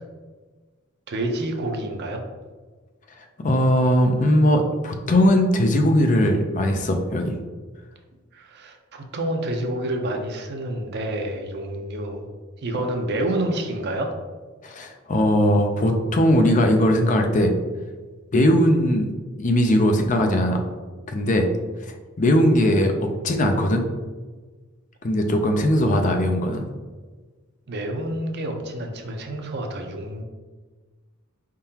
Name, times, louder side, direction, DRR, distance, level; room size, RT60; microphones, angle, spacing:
voice 1, 1.1-2.2 8.3-12.3 12.6-14.1 27.7-30.2, right 1 dB, 55° right, 4 dB, 0.6 m, -28 dB
voice 2, 3.4-7.3 14.6-17.5 18.3-19.1 19.4-20.6 21.1-21.5 22.2-23.9 25.0-26.7, equal, 35° left, 4 dB, 0.5 m, -19 dB
4.6 x 3.7 x 2.8 m, 1.4 s
head